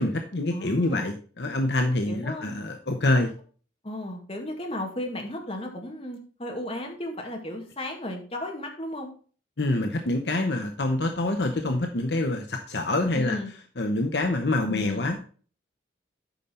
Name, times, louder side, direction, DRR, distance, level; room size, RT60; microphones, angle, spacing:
voice 1, 0.0-3.3 9.6-13.4 13.8-15.2, left 2 dB, 60° left, 5 dB, 0.9 m, -26 dB
voice 2, 0.5-1.1 2.1-2.6 3.8-9.1 13.1-13.5 14.7-15.1, left 1 dB, 30° left, 2 dB, 1.9 m, -34 dB
9.2 x 5.5 x 4.3 m, 0.40 s
head